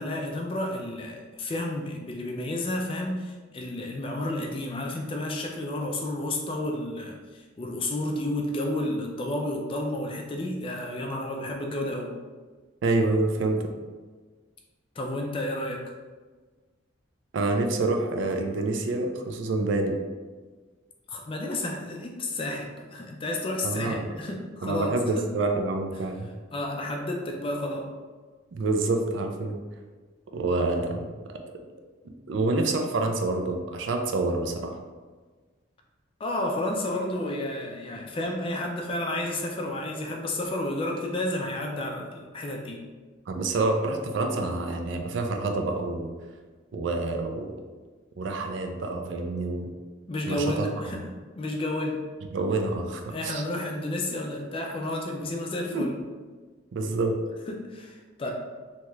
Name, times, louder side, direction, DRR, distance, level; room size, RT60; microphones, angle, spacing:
voice 1, 0.0-12.1 15.0-15.8 21.1-25.2 26.5-27.9 36.2-42.8 50.1-51.0 51.4-52.0 53.1-56.0 57.5-58.3, left 1 dB, 25° left, 1 dB, 0.3 m, -31 dB
voice 2, 12.8-13.7 17.3-20.0 23.6-24.1 24.6-26.3 28.5-29.6 30.3-31.4 32.3-34.8 43.3-46.1 46.7-47.5 48.2-49.7 50.3-50.7 52.3-53.4 55.7-55.9 56.7-57.2, right 2 dB, 65° right, 4 dB, 0.3 m, -27 dB
2.8 x 2.3 x 3.1 m, 1.4 s
head